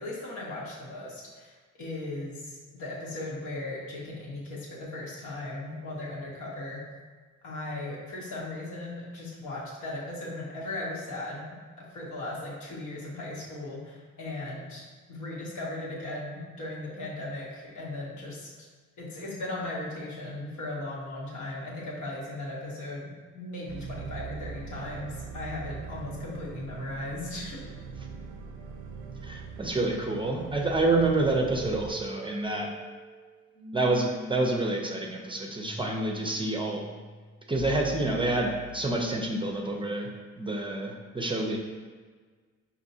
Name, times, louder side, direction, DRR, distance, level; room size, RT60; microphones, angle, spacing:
voice 1, 0.0-6.8 7.4-18.7 19.0-27.6, left 2 dB, 75° left, -5 dB, 1.3 m, -37 dB
sound 1, 23.7-31.9, right 5 dB, 90° right, 0.5 m, -41 dB
voice 2, 29.2-32.7 33.7-36.8 37.5-40.1 40.4-41.6, right 2 dB, 15° right, 0 dB, 0.5 m, -28 dB
sound 2, 31.5-39.4, right 1 dB, 5° left, 0.8 m, -43 dB
5.1 x 2.8 x 2.7 m, 1.5 s
cardioid pair, 90°, 30 cm